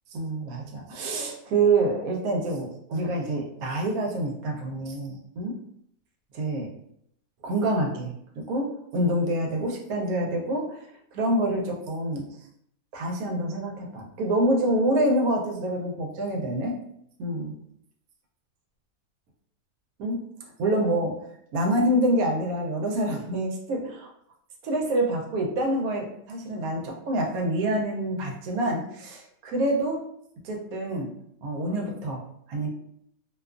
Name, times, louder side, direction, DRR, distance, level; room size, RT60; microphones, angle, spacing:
voice 1, 0.1-5.5 6.3-6.7 7.4-8.1 8.5-8.7 8.9-10.7 11.1-12.3 12.9-16.7 17.2-17.5 20.0-20.2 20.6-21.1 21.5-24.1 24.6-30.0 30.4-31.1 31.4-32.2 32.5-32.7, right 1 dB, 85° right, 1 dB, 1.1 m, -26 dB
2.5 x 2.3 x 2.3 m, 0.72 s
omnidirectional pair, 1.5 m